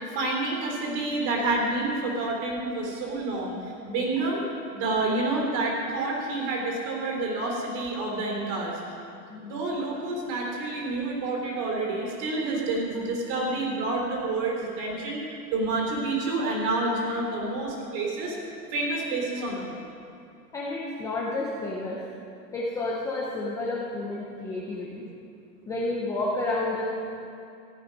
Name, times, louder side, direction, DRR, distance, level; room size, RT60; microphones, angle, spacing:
voice 1, 0.1-4.4 4.7-8.8 9.4-15.2 15.5-18.4 18.7-19.7, right 2 dB, 40° right, -1 dB, 3.4 m, -28 dB
voice 2, 20.5-22.0 22.5-25.1 25.7-26.8, left 2 dB, 5° left, -5 dB, 0.6 m, -30 dB
14.5 x 9.4 x 5.3 m, 2.6 s
hypercardioid pair, 150°, 49 cm